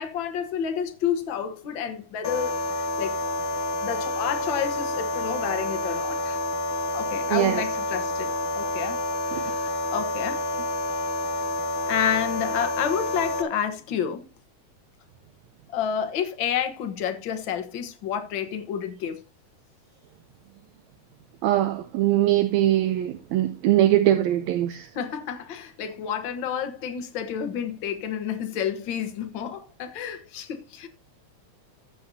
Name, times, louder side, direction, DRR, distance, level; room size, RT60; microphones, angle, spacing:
voice 1, 0.0-3.2 3.8-6.4 6.9-9.0 9.3-10.4 11.9-14.2 15.7-19.2 24.9-30.9, left 8 dB, 55° left, 1.4 m, -30 dB
sound 1, 2.2-13.4, left 1 dB, 75° left, 1.2 m, -28 dB
voice 2, 7.3-7.7 9.3-9.4 21.4-24.9, right 13 dB, 80° right, 1.8 m, -22 dB
14.0 x 7.1 x 2.7 m
omnidirectional pair, 3.5 m